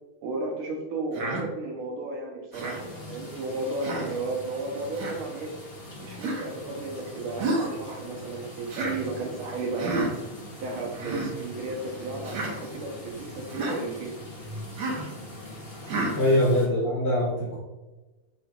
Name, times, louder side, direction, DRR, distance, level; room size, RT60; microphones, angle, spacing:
voice 1, 0.2-5.5 6.0-10.1 10.6-14.2, right 3 dB, 80° right, 1 dB, 1.7 m, -34 dB
Human voice, 1.1-1.4 2.5-2.8 3.8-4.1 4.9-5.2 6.2-6.5 7.4-7.7 8.7-9.0 9.8-10.1 10.9-11.3 12.2-12.5 13.5-13.8 14.8-15.1 15.9-16.2, right 2 dB, 65° right, 1.3 m, -30 dB
sound 1, 2.5-16.7, left 1 dB, 30° left, 1.5 m, -42 dB
voice 2, 16.1-17.6, left 1 dB, 75° left, -7 dB, 0.4 m, -23 dB
4.4 x 3.9 x 2.3 m, 1.1 s
omnidirectional pair, 2.3 m